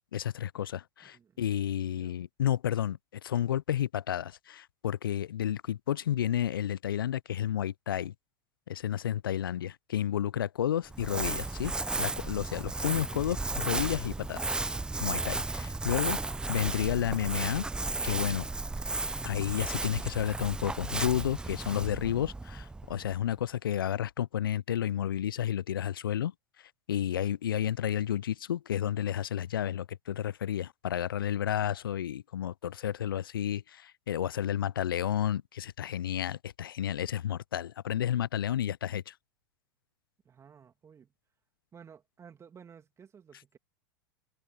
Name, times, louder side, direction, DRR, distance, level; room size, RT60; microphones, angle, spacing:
voice 1, 0.1-8.1 8.7-11.7 12.0-14.4 15.0-16.2 16.5-17.6 18.0-18.5 19.3-26.3 26.9-39.1, left 10 dB, 90° left, 0.4 m, -31 dB
voice 2, 1.0-1.4 1.9-2.2 40.2-41.1 41.7-43.6, right 7 dB, 25° right, 2.5 m, -54 dB
Crumpling crinkling, 10.9-23.3, right 3 dB, 5° right, 0.4 m, -34 dB
hypercardioid pair, 100°, 11 cm